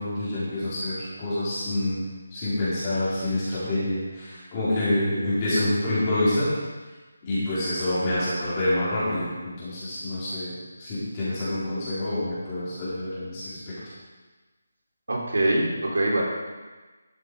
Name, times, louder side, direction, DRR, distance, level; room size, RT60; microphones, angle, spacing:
voice 1, 0.0-2.0 2.3-6.5 7.2-10.5 10.8-13.9, left 1 dB, 15° left, -12 dB, 4.0 m, -27 dB
voice 2, 15.1-16.2, right 1 dB, 85° right, -2 dB, 3.1 m, -23 dB
12.5 x 7.4 x 4.7 m, 1.3 s
figure-of-eight pair, 175°, 0 cm